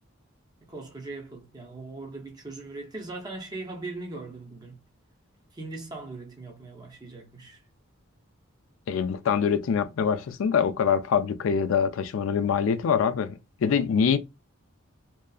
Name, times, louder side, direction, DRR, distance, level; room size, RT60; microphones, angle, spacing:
voice 1, 0.7-4.8 5.5-7.6, right 2 dB, 20° right, 0.5 m, -39 dB
voice 2, 8.9-14.2, left 7 dB, 70° left, 0.3 m, -24 dB
2.7 x 2.4 x 2.3 m
head